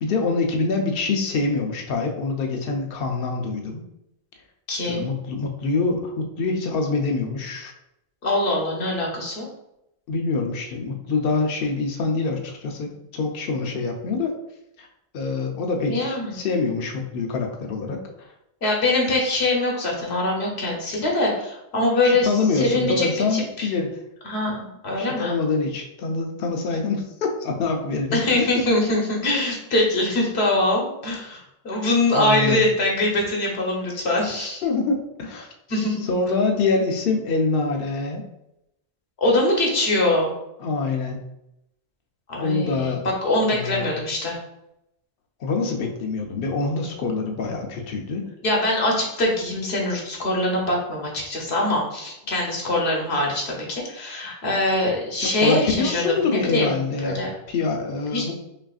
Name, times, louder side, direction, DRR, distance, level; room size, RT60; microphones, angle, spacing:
voice 1, 0.0-3.8 4.9-7.7 10.1-14.3 14.8-14.9 15.1-18.3 22.0-24.0 25.0-28.5 32.1-32.6 34.6-35.5 36.0-38.2 40.6-41.2 42.4-43.0 43.5-43.9 45.4-48.3 55.2-58.3, left 4 dB, 65° left, 2 dB, 0.8 m, -25 dB
voice 2, 4.7-5.1 8.2-9.5 15.9-16.3 18.6-23.7 24.2-25.4 28.1-34.6 35.7-36.1 39.2-40.3 42.3-43.0 43.2-44.4 48.4-57.3 58.1-58.3, left 1 dB, 90° left, -1 dB, 1.3 m, -23 dB
5.6 x 2.5 x 2.4 m, 0.83 s
omnidirectional pair, 1.0 m